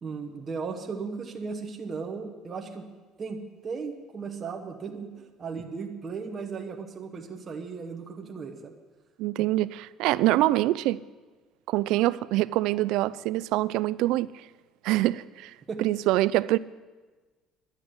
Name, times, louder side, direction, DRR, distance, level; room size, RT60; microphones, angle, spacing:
voice 1, 0.0-2.9 3.2-8.7 15.7-15.8, right 5 dB, 25° right, 2 dB, 1.1 m, -36 dB
voice 2, 9.2-11.0 11.7-14.3 14.8-15.5 15.8-16.6, right 17 dB, 75° right, 18 dB, 0.3 m, -25 dB
11.0 x 8.2 x 7.9 m, 1.3 s
cardioid pair, 150°, 0 cm